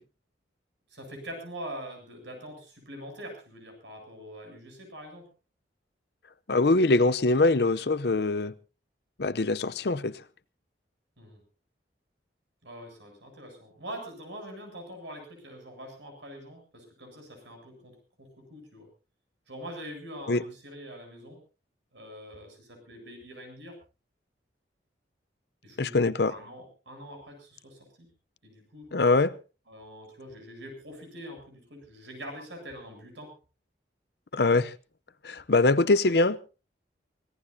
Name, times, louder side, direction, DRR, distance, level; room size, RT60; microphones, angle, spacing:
voice 1, 0.9-5.3 11.2-11.4 12.6-18.9 19.5-21.4 21.9-23.8 25.6-28.1 28.4-28.9 29.7-33.3, equal, 80° right, 7.9 m, -44 dB
voice 2, 6.5-8.5 9.2-10.2 20.3-20.4 25.8-26.3 28.9-29.3 34.3-34.7 35.2-36.4, left 3 dB, 60° left, 0.7 m, -23 dB
24.5 x 18.0 x 2.8 m
head